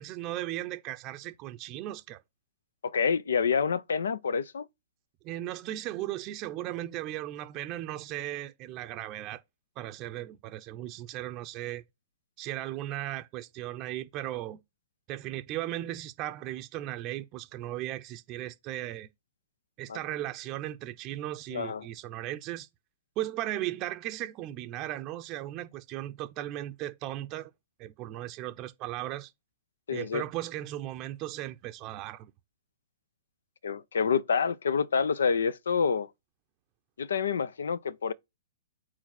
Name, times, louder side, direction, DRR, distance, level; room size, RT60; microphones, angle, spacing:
voice 1, 0.0-2.2 5.2-9.4 9.8-11.8 12.4-14.6 15.1-19.1 19.8-22.7 23.2-27.5 27.8-29.3 29.9-32.3, right 14 dB, 35° right, 0.6 m, -36 dB
voice 2, 2.8-4.6 19.9-20.0 21.5-21.9 29.9-30.2 33.6-36.1 37.0-38.1, left 6 dB, 75° left, 0.6 m, -27 dB
4.7 x 4.3 x 5.8 m
hypercardioid pair, 120°, 0 cm